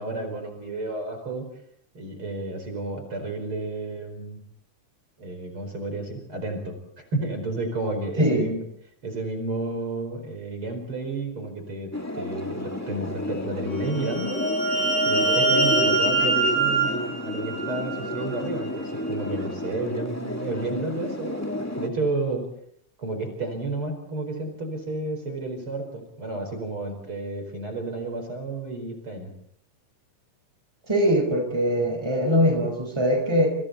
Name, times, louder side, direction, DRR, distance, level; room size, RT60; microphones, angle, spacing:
voice 1, 0.0-1.5 1.9-4.4 5.2-8.6 9.0-14.4 15.0-21.4 21.8-22.5 23.0-29.3, right 2 dB, 40° right, 5 dB, 5.5 m, -31 dB
voice 2, 8.2-8.5 30.9-33.5, equal, 10° right, 4 dB, 4.8 m, -22 dB
sound 1, 11.9-21.9, left 1 dB, 10° left, 1.2 m, -31 dB
sound 2, 13.9-18.3, right 3 dB, 35° left, 7.8 m, -24 dB
29.0 x 28.0 x 4.3 m, 0.68 s
omnidirectional pair, 3.6 m